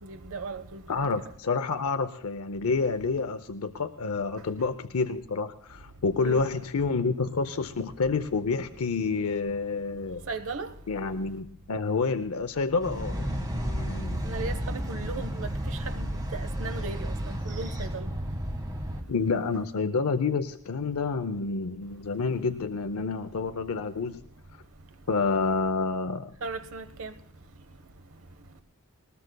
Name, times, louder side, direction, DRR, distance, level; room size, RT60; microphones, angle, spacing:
voice 1, 0.0-1.1 6.2-6.4 10.3-10.7 14.2-18.1 26.4-27.1, right 3 dB, 65° right, 1.0 m, -37 dB
voice 2, 0.9-10.2 10.9-14.3 19.1-24.2 25.1-26.3, left 4 dB, 80° left, 0.6 m, -29 dB
sound 1, 12.8-19.0, equal, 20° right, 1.6 m, -32 dB
20.0 x 20.0 x 2.3 m
head